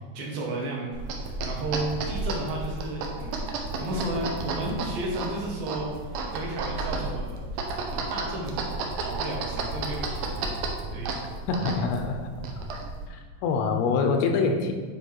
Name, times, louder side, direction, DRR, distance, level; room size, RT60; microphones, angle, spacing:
voice 1, 0.1-3.5 3.8-8.7 9.0-10.5 10.9-11.2, right 2 dB, 70° right, -2 dB, 2.8 m, -33 dB
sound 1, 0.9-13.1, right 3 dB, 90° right, 1.8 m, -32 dB
voice 2, 11.5-12.3 13.1-14.7, left 4 dB, 90° left, 5 dB, 2.7 m, -25 dB
9.0 x 3.2 x 4.6 m, 1.5 s
omnidirectional pair, 4.6 m